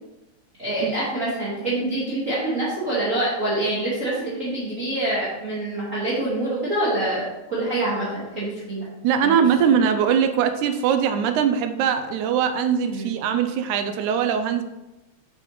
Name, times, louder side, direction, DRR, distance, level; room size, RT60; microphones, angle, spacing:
voice 1, 0.6-8.8 9.2-9.8 12.9-13.1, right 1 dB, 30° right, -8 dB, 1.7 m, -26 dB
voice 2, 9.0-14.6, right 7 dB, 85° right, 8 dB, 2.0 m, -21 dB
7.5 x 7.1 x 3.1 m, 0.99 s
omnidirectional pair, 3.4 m